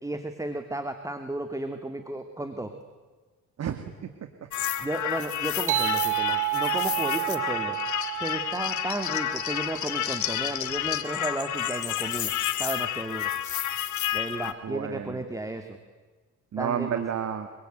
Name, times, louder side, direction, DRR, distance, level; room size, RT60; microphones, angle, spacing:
voice 1, 0.0-2.7 4.8-7.8 8.2-12.3 12.6-13.3 14.1-15.8 16.6-17.0, right 1 dB, 10° right, 7 dB, 2.3 m, -33 dB
voice 2, 3.6-4.1 14.6-15.2 16.5-17.5, right 8 dB, 60° right, 7 dB, 2.3 m, -31 dB
sound 1, 4.5-14.5, left 11 dB, 75° left, 2.2 m, -30 dB
sound 2, 5.7-10.7, right 20 dB, 85° right, 1.6 m, -31 dB
26.0 x 23.5 x 9.3 m, 1.4 s
cardioid pair, 90°, 30 cm